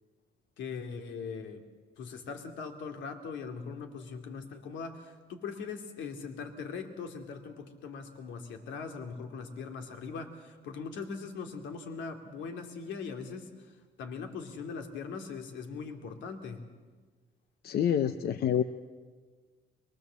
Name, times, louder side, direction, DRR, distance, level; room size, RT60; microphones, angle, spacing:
voice 1, 0.6-1.6 2.0-16.7, left 5 dB, 80° left, 6 dB, 2.6 m, -40 dB
voice 2, 17.6-18.6, left 9 dB, 55° left, 10 dB, 0.9 m, -27 dB
23.0 x 22.5 x 7.6 m, 1.4 s
cardioid pair, 130°, 19 cm